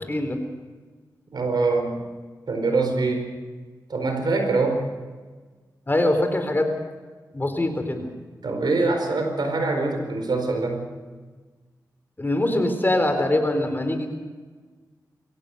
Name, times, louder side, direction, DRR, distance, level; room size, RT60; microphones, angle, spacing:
voice 1, 0.1-0.4 5.9-6.7 7.3-8.1 12.2-14.1, left 1 dB, 30° left, 6 dB, 3.8 m, -23 dB
voice 2, 1.3-2.0 2.5-3.3 3.9-4.9 8.4-10.9, right 3 dB, 75° right, 5 dB, 4.7 m, -24 dB
23.5 x 17.0 x 6.6 m, 1.4 s
cardioid pair, 65°, 7 cm